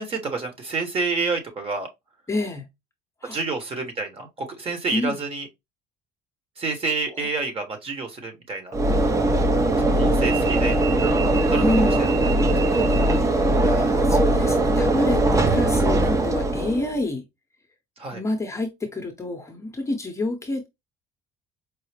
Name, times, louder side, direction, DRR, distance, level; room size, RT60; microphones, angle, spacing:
voice 1, 0.0-1.9 3.3-5.5 6.6-8.7 9.8-10.8 11.5-11.6 12.0-12.1 12.8-13.1 18.0-18.2, right 3 dB, 35° right, 1.2 m, -29 dB
voice 2, 2.3-2.7 3.2-3.4 4.9-5.2 9.9-10.2 11.4-12.1 13.5-17.2 18.1-20.7, left 2 dB, 15° left, 0.8 m, -28 dB
Train / Engine / Alarm, 8.7-17.0, right 2 dB, 20° right, 0.5 m, -20 dB
4.7 x 2.0 x 3.3 m
cardioid pair, 135°, 17 cm